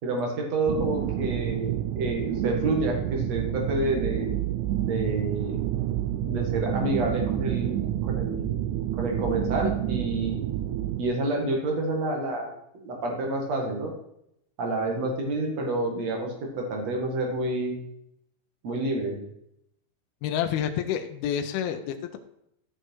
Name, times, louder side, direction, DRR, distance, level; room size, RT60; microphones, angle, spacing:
voice 1, 0.0-4.3 4.8-5.6 6.2-7.8 8.1-8.5 9.0-10.4 11.0-13.9 14.6-17.8 18.6-19.2, right 2 dB, 50° right, 1 dB, 2.7 m, -29 dB
sound 1, 0.7-11.0, right 13 dB, 90° right, 1.8 m, -29 dB
voice 2, 20.2-22.2, left 9 dB, 80° left, 7 dB, 2.5 m, -28 dB
13.0 x 6.5 x 4.6 m, 0.77 s
omnidirectional pair, 4.4 m